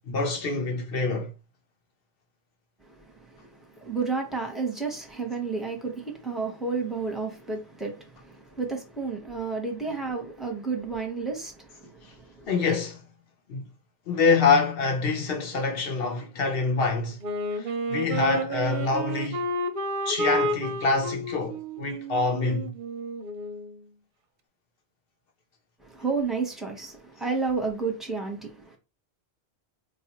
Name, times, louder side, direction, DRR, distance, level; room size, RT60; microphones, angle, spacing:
voice 1, 0.1-1.3 9.9-10.0 12.5-13.0 13.5-13.6 14.1-17.2 17.5-19.5 20.1-22.7, left 4 dB, 65° left, 0.9 m, -26 dB
voice 2, 2.9-12.5 25.8-28.8, right 4 dB, ahead, 0.7 m, -31 dB
Wind instrument woodwind instrument, 17.2-23.8, right 1 dB, 60° right, 0.6 m, -31 dB
4.1 x 2.4 x 2.9 m
omnidirectional pair, 1.1 m